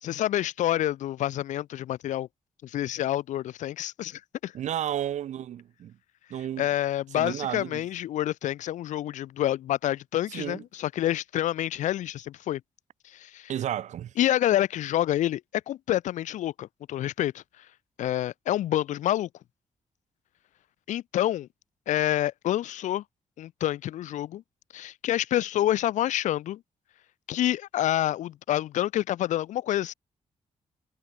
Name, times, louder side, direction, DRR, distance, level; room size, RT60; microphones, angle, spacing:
voice 1, 0.0-2.3 2.6-4.5 6.6-12.6 13.0-13.5 14.2-15.4 15.7-17.4 18.0-19.3 20.9-21.5 21.9-23.0 23.4-24.4 24.7-26.6 27.3-29.9, left 13 dB, 85° left, 0.4 m, -28 dB
voice 2, 4.5-6.0 6.3-6.7 7.1-7.8 10.3-10.6 13.5-14.1, right 11 dB, 70° right, 0.5 m, -32 dB
cardioid pair, 90°, 12 cm